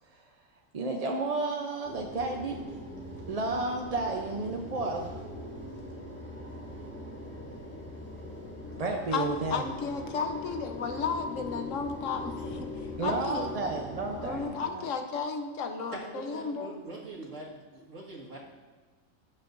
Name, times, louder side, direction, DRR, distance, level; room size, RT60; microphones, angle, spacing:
voice 1, 0.7-2.6 3.3-5.1 8.8-9.6 13.0-14.9, right 3 dB, 40° right, 1 dB, 0.6 m, -32 dB
sound 1, 1.8-14.4, left 2 dB, 10° left, 2.8 m, -41 dB
voice 2, 9.1-12.7 13.0-13.5 14.2-16.7, left 5 dB, 75° left, 6 dB, 1.2 m, -33 dB
voice 3, 15.9-18.4, right 2 dB, 65° right, -3 dB, 2.1 m, -43 dB
16.0 x 7.4 x 2.6 m, 1.4 s
omnidirectional pair, 1.4 m